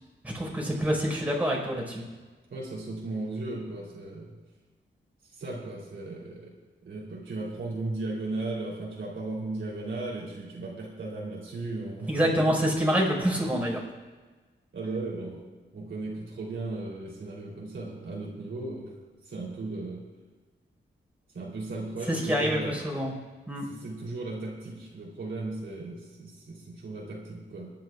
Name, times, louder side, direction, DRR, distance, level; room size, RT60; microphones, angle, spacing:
voice 1, 0.2-2.0 12.1-13.8 22.1-23.1 23.5-23.6, equal, 10° right, -3 dB, 4.6 m, -26 dB
voice 2, 2.5-4.3 5.4-6.5 6.8-12.6 14.7-15.4 15.7-18.9 19.3-20.0 21.3-22.8 23.7-27.7, right 2 dB, 75° right, -4 dB, 3.2 m, -36 dB
26.5 x 10.5 x 2.4 m, 1.3 s
wide cardioid pair, 110°, 20 cm